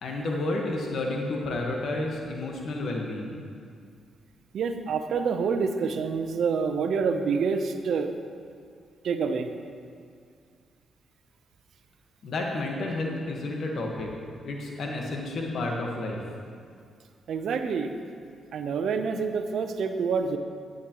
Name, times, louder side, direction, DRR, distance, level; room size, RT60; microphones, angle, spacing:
voice 1, 0.0-3.4 12.2-14.1 14.4-16.2, left 2 dB, 65° left, 0 dB, 1.4 m, -31 dB
voice 2, 4.5-8.1 9.0-9.5 17.3-17.9 18.5-20.4, right 5 dB, 70° right, 7 dB, 0.7 m, -27 dB
14.5 x 9.7 x 3.0 m, 2.2 s
supercardioid pair, 60°, 0 cm